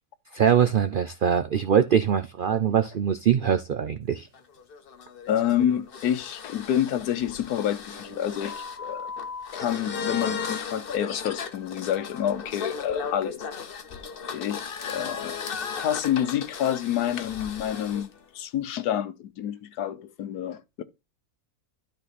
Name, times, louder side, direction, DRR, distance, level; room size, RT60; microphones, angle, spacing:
voice 1, 0.3-4.3, right 8 dB, 90° right, 0.4 m, -22 dB
sound 1, 4.3-18.1, left 6 dB, 45° left, 0.9 m, -36 dB
voice 2, 5.3-9.1 9.5-13.4 14.3-20.8, left 10 dB, 90° left, 1.3 m, -28 dB
12.5 x 4.2 x 4.1 m
omnidirectional pair, 1.6 m